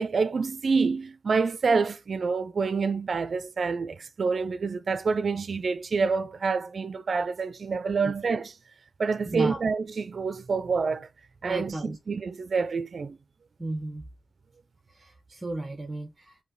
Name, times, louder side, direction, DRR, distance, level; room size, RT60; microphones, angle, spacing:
voice 1, 0.0-8.5 9.0-11.1 11.4-13.2, right 4 dB, 60° right, 0.5 m, -27 dB
voice 2, 9.3-9.6 11.4-12.0 13.6-14.0 14.9-16.4, right 2 dB, 25° right, 0.9 m, -34 dB
4.9 x 2.8 x 3.8 m
wide cardioid pair, 90°, 0 cm